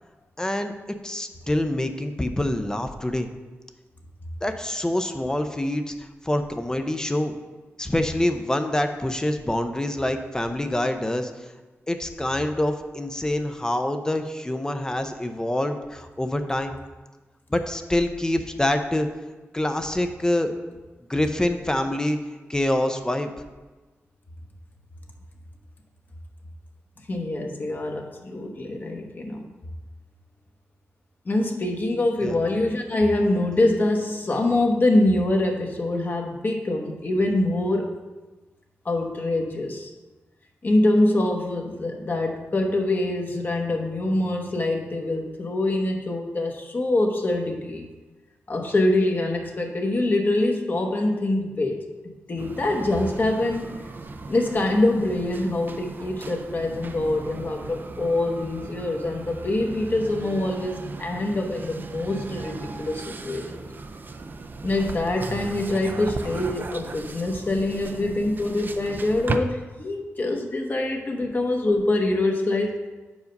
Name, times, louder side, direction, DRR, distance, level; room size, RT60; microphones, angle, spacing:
voice 1, 0.4-0.7 1.0-3.3 4.4-7.3 7.8-11.3 11.9-16.8 17.5-19.1 19.5-20.5 21.1-22.2 22.5-23.3 32.2-32.4, left 1 dB, 15° left, 7 dB, 0.5 m, -26 dB
voice 2, 27.1-29.4 31.2-38.0 38.8-39.9 40.6-47.9 48.5-53.7 54.3-63.6 64.6-72.8, left 2 dB, 40° left, 2 dB, 1.0 m, -24 dB
sound 1, 52.4-69.4, right 3 dB, 45° right, 0.5 m, -36 dB
6.5 x 4.8 x 5.3 m, 1.2 s
wide cardioid pair, 90°, 5 cm